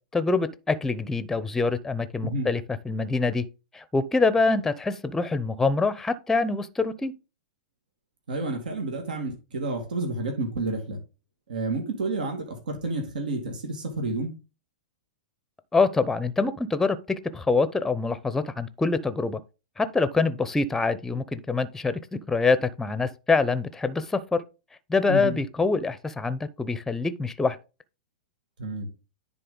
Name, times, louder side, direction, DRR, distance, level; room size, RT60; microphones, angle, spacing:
voice 1, 0.1-2.6 2.9-3.5 3.7-7.1 15.7-19.4 19.8-24.4 24.9-27.6, left 4 dB, 10° left, 0.6 m, -25 dB
voice 2, 8.3-11.0 11.5-14.3 25.1-25.4 28.6-28.9, right 2 dB, 80° right, 2.0 m, -30 dB
10.0 x 4.2 x 3.8 m
hypercardioid pair, 115°, 4 cm